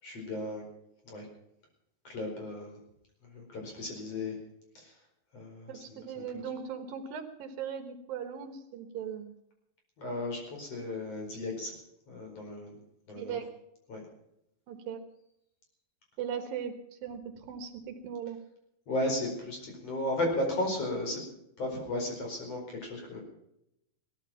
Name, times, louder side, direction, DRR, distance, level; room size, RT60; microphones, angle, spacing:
voice 1, 0.0-0.6 1.1-1.3 2.0-2.8 3.3-4.4 4.8-4.9 5.3-6.2 10.0-11.7 12.1-12.8 13.1-13.4 13.9-14.1 18.9-21.2 21.6-23.2, left 1 dB, 40° left, 1 dB, 5.7 m, -35 dB
voice 2, 5.7-9.3 13.2-13.5 14.7-15.0 16.2-16.7 17.0-17.2 17.5-18.4, right 7 dB, 75° right, 8 dB, 3.1 m, -38 dB
17.5 x 14.0 x 5.8 m, 0.80 s
omnidirectional pair, 4.3 m